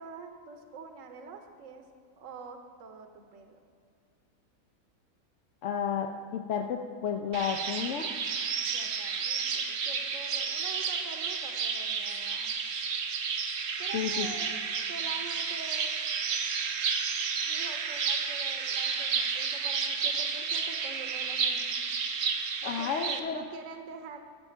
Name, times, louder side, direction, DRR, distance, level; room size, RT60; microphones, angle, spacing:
voice 1, 0.0-1.9 2.2-3.6 8.7-12.6 13.8-14.5 14.9-16.0 17.4-21.8 22.6-24.2, right 4 dB, 65° right, 5 dB, 1.2 m, -46 dB
voice 2, 5.6-8.1 13.9-14.3 22.6-23.4, left 7 dB, 65° left, 4 dB, 0.9 m, -31 dB
sound 1, 7.3-23.2, right 5 dB, 85° right, 1.3 m, -31 dB
14.5 x 8.5 x 4.5 m, 2.2 s
omnidirectional pair, 1.5 m